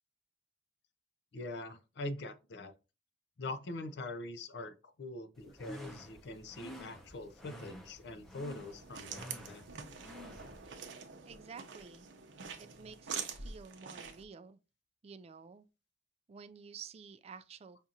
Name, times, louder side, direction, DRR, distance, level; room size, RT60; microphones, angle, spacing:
voice 1, 1.3-2.7 3.4-9.7, left 2 dB, 60° left, 0.5 m, -43 dB
sound 1, 5.4-10.7, equal, ahead, 0.6 m, -51 dB
sound 2, 8.5-14.2, right 6 dB, 75° right, 0.6 m, -45 dB
voice 2, 11.3-12.1 12.6-14.6 15.0-15.7 16.3-17.9, right 6 dB, 35° right, 0.3 m, -51 dB
5.2 x 2.4 x 2.8 m
head